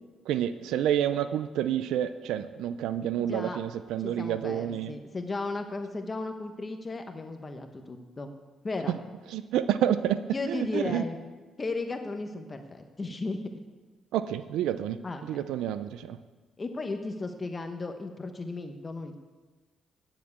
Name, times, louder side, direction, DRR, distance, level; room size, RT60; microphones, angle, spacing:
voice 1, 0.3-4.9 9.3-11.0 14.1-16.2, right 10 dB, 90° right, 12 dB, 0.4 m, -29 dB
voice 2, 3.2-3.6 4.0-8.3 8.6-8.9 10.3-11.2 11.6-13.4 15.0-15.4 16.6-19.2, left 3 dB, 30° left, 6 dB, 1.0 m, -35 dB
9.5 x 7.4 x 8.3 m, 1.3 s
cardioid pair, 90°, 0 cm